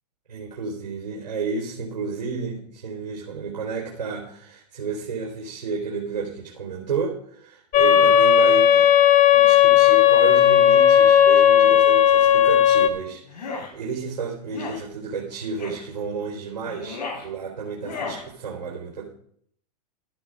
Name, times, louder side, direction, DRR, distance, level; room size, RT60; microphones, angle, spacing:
voice 1, 0.3-8.9 9.3-19.1, right 5 dB, 85° right, -3 dB, 3.9 m, -31 dB
sound 1, 7.7-12.9, left 10 dB, 35° left, 1.3 m, -15 dB
sound 2, 13.3-13.7 14.5-14.8 15.6-15.8 16.6-17.3 17.8-18.2, left 4 dB, 75° left, 4.8 m, -34 dB
13.5 x 10.0 x 4.9 m, 0.63 s
hypercardioid pair, 120°, 21 cm